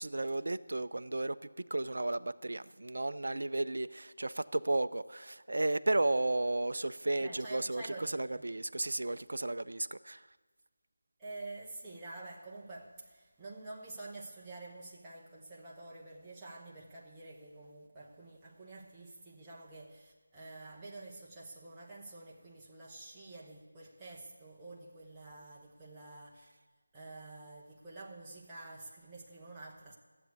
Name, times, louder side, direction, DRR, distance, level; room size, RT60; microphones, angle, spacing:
voice 1, 0.0-10.2, right 2 dB, 60° right, 0.4 m, -33 dB
voice 2, 7.2-8.5 11.2-26.5 26.9-29.9, right 2 dB, 10° right, 1.0 m, -48 dB
13.5 x 7.9 x 8.3 m
figure-of-eight pair, 165°, 0 cm